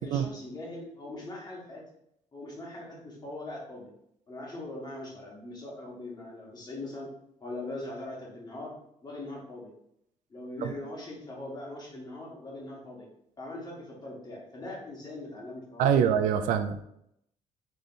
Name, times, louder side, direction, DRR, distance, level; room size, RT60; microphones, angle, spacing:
voice 1, 0.0-1.8 2.3-3.9 4.3-7.1 7.4-8.7 9.0-9.7 10.3-13.1 13.4-16.1, left 2 dB, 30° left, -3 dB, 1.6 m, -41 dB
voice 2, 15.8-16.8, right 8 dB, 85° right, 9 dB, 0.4 m, -24 dB
3.6 x 3.3 x 4.0 m, 0.76 s
cardioid pair, 100°, 13 cm